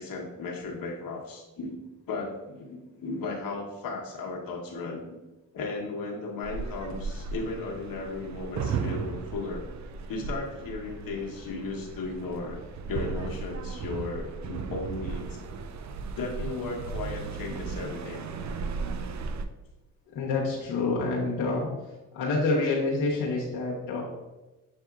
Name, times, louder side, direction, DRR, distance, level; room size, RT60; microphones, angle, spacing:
voice 1, 0.0-1.8 2.1-5.2 5.5-9.6 10.1-12.6 12.9-15.4 16.2-18.3, left 3 dB, 60° left, -1 dB, 1.2 m, -35 dB
sound 1, 6.4-19.5, right 5 dB, 45° right, 0.5 m, -36 dB
voice 2, 20.1-21.7 22.1-24.0, left 3 dB, 75° left, -4 dB, 1.1 m, -27 dB
7.4 x 2.8 x 2.4 m, 1.1 s
supercardioid pair, 55°, 39 cm